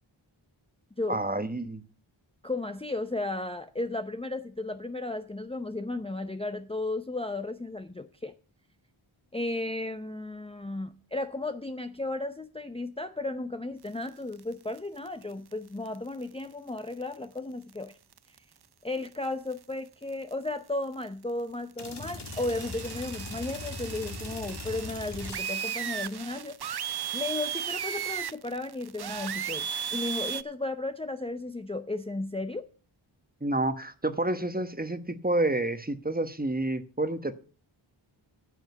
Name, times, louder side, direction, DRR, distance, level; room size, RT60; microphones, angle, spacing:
voice 1, 1.1-1.8 33.4-37.3, right 2 dB, 20° right, 1.2 m, -29 dB
voice 2, 2.4-8.3 9.3-17.9 18.8-26.5 27.1-32.7, left 2 dB, 10° left, 0.7 m, -34 dB
sound 1, 14.1-14.8 15.1-15.2 15.5-15.6 15.9-16.0 16.8-17.1 17.7-17.8 18.1-18.4 19.1-19.3 19.5-19.6 20.0-20.3 21.7-30.4, right 8 dB, 50° right, 0.6 m, -36 dB
sound 2, 21.8-26.2, left 3 dB, 55° left, 1.9 m, -41 dB
9.4 x 7.8 x 6.7 m
wide cardioid pair, 45°, 50 cm